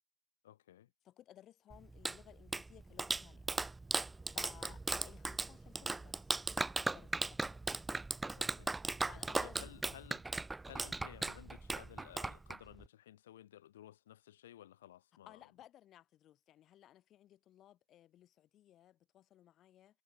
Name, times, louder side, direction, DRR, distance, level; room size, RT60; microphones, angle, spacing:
voice 1, 0.4-0.9 4.6-4.8 8.4-8.7 9.0-9.1 9.3-10.2 10.6-15.5, left 12 dB, 70° left, 1.3 m, -56 dB
voice 2, 1.0-3.5 4.2-6.3 6.8-7.6 9.0-9.7 15.3-20.0, left 12 dB, 35° left, 1.6 m, -60 dB
Clapping, 1.7-12.9, right 3 dB, 10° right, 0.3 m, -38 dB
figure-of-eight pair, 90°, 0 cm